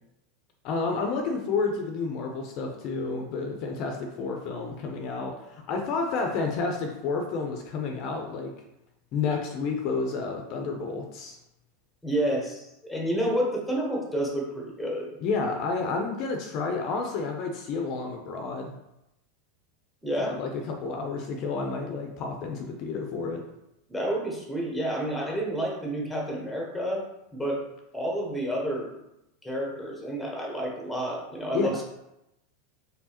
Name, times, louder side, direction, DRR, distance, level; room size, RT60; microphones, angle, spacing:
voice 1, 0.6-8.5 9.1-11.4 15.2-18.7 20.2-23.4 31.5-31.8, left 4 dB, 45° left, 3 dB, 0.5 m, -30 dB
voice 2, 12.0-15.1 20.0-20.4 23.9-27.0 27.3-27.6 27.9-28.9 29.4-31.8, right 1 dB, ahead, -1 dB, 1.0 m, -29 dB
4.5 x 3.3 x 2.9 m, 0.87 s
supercardioid pair, 140°, 0 cm